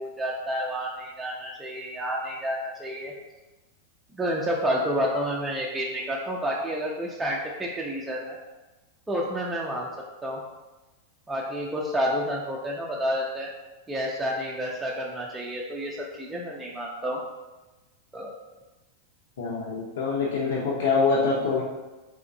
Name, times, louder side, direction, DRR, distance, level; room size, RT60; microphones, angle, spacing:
voice 1, 0.0-3.1 4.1-8.4 9.1-9.9 10.2-10.4 11.3-13.5 13.9-17.2 18.1-18.4, equal, 10° right, -3 dB, 0.4 m, -29 dB
voice 2, 19.4-21.6, left 4 dB, 85° left, -5 dB, 0.7 m, -25 dB
3.7 x 3.4 x 2.6 m, 1.1 s
supercardioid pair, 135°, 0 cm